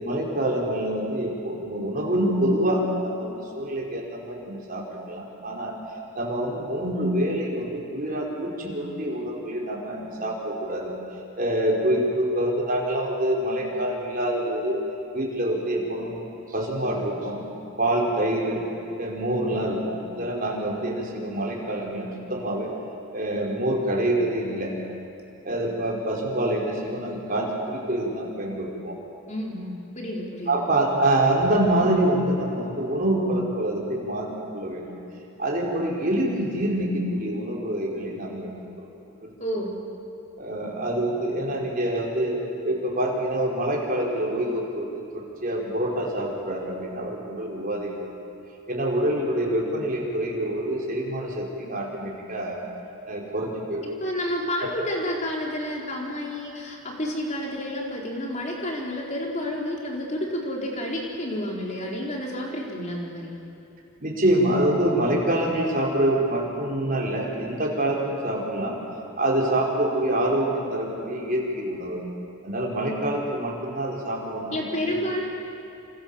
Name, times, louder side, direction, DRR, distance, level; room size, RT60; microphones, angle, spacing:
voice 1, 0.0-5.7 6.2-10.9 11.4-14.8 15.1-17.4 17.8-18.6 19.0-22.7 23.1-24.7 25.4-29.0 30.5-34.3 34.5-34.9 35.4-38.5 38.8-38.9 39.2-39.6 40.4-42.4 42.6-48.1 48.7-52.6 53.1-53.8 64.0-68.8 69.2-72.0 72.4-75.0, right 1 dB, 40° right, -2 dB, 5.4 m, -26 dB
voice 2, 29.3-30.6 39.4-39.7 53.8-63.3 74.5-75.2, left 1 dB, 30° left, -2 dB, 4.6 m, -30 dB
29.0 x 27.5 x 7.3 m, 2.7 s
head